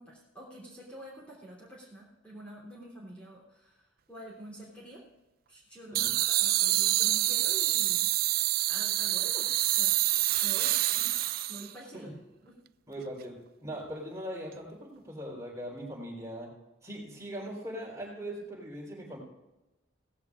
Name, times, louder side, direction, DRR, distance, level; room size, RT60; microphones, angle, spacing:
voice 1, 0.0-5.0 5.5-8.1 8.7-9.9 10.4-11.2 11.5-12.1 12.4-12.5, right 1 dB, 5° left, -6 dB, 3.2 m, -47 dB
sound 1, 5.9-11.7, right 16 dB, 50° right, 0.3 m, -27 dB
voice 2, 12.9-16.5 16.8-19.2, equal, 15° right, -2 dB, 4.1 m, -40 dB
18.0 x 15.5 x 2.5 m, 1.0 s
head